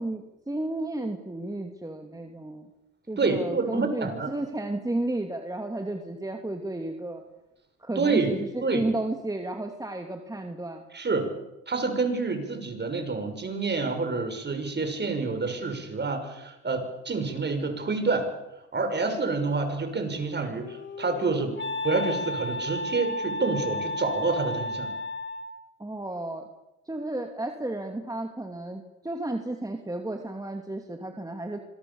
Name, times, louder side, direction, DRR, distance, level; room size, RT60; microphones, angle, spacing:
voice 1, 0.0-2.7 3.1-7.2 7.8-10.9 25.8-26.4 26.9-31.6, right 2 dB, 10° right, 4 dB, 2.6 m, -32 dB
voice 2, 3.2-4.3 8.0-8.3 8.6-8.9 10.9-11.3 11.7-18.3 18.7-21.6 21.8-24.9, right 4 dB, 35° right, 7 dB, 6.0 m, -28 dB
Wind instrument woodwind instrument, 20.2-25.7, left 1 dB, 40° left, 1.4 m, -33 dB
25.5 x 22.0 x 7.1 m, 0.93 s
cardioid pair, 90°, 30 cm